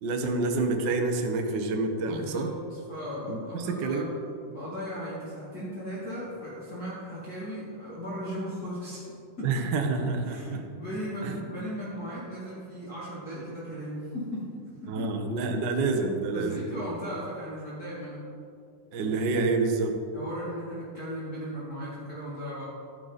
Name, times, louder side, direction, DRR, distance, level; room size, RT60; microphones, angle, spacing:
voice 1, 0.0-2.5 3.3-4.1 9.4-10.6 11.2-11.4 14.9-16.6 18.9-19.9, right 3 dB, 70° right, 4 dB, 1.0 m, -28 dB
voice 2, 2.0-4.1 4.5-9.7 10.0-15.1 16.3-18.2 20.1-22.6, equal, 30° left, -10 dB, 2.9 m, -37 dB
12.0 x 11.0 x 4.1 m, 2.4 s
omnidirectional pair, 3.7 m